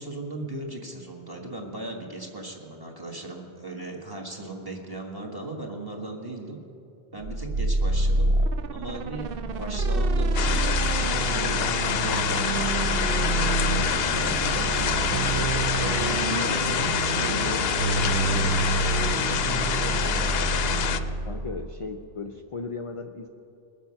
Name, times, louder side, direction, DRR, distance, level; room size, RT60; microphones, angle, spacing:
voice 1, 0.0-6.6 7.1-8.4 8.7-20.1, right 2 dB, 20° right, 0 dB, 1.5 m, -37 dB
sound 1, 7.2-21.8, right 3 dB, 65° right, 0.8 m, -27 dB
sound 2, 10.4-21.0, left 8 dB, 70° left, 0.8 m, -26 dB
voice 2, 21.2-23.3, left 4 dB, 45° left, 5 dB, 0.5 m, -36 dB
21.0 x 7.2 x 5.7 m, 2.8 s
omnidirectional pair, 1.1 m